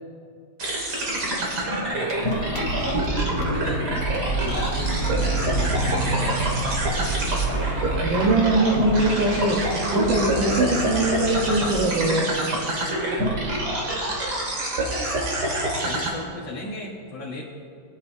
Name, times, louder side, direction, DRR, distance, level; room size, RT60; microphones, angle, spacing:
sound 1, 0.6-16.1, right 1 dB, 60° right, 2.5 m, -26 dB
voice 1, 1.0-3.1 3.4-3.9 4.3-7.2 15.4-17.4, left 2 dB, 90° left, -5 dB, 2.1 m, -36 dB
sound 2, 1.9-11.8, right 3 dB, 55° left, 1.8 m, -29 dB
voice 2, 8.0-9.6 9.9-12.3, right 2 dB, 80° right, -4 dB, 2.0 m, -21 dB
20.0 x 11.0 x 2.7 m, 2.3 s
omnidirectional pair, 2.0 m